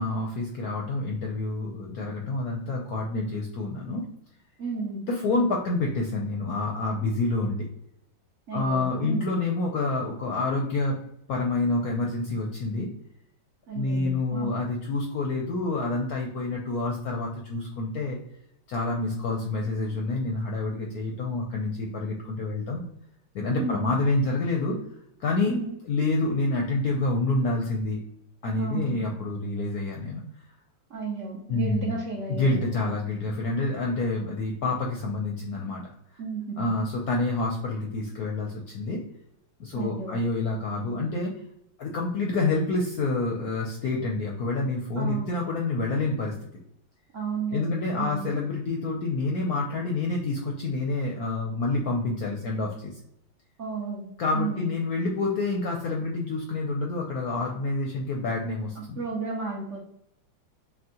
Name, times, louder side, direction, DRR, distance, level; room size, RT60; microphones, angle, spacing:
voice 1, 0.0-4.0 5.1-7.7 8.5-11.0 11.3-12.9 13.7-18.2 18.7-22.8 23.3-24.8 25.2-25.5 25.9-28.0 28.4-30.2 31.5-32.0 32.3-35.8 36.6-39.0 39.6-41.3 41.8-46.3 47.5-53.0 54.2-59.0, left 2 dB, 65° left, 0 dB, 0.9 m, -28 dB
voice 2, 4.6-5.0 7.0-7.1 8.5-9.3 13.7-14.5 23.6-23.9 25.5-25.7 28.6-29.0 30.9-32.6 36.2-36.7 39.7-40.2 40.8-41.0 45.0-45.4 47.1-48.3 53.6-54.1 54.3-54.7 58.8-59.8, right 4 dB, 55° right, -3 dB, 0.8 m, -33 dB
6.0 x 2.3 x 2.8 m, 0.75 s
omnidirectional pair, 2.1 m